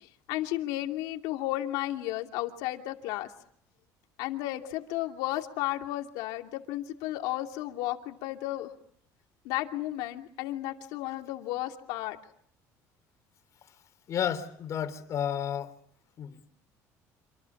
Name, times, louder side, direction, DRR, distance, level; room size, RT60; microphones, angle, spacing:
voice 1, 0.0-3.3 4.2-8.7 9.4-12.2, left 15 dB, 85° left, 4 dB, 2.7 m, -33 dB
voice 2, 14.1-15.7 16.2-16.4, left 9 dB, 45° left, 10 dB, 3.5 m, -31 dB
27.5 x 25.5 x 7.3 m, 0.66 s
cardioid pair, 125°, 7 cm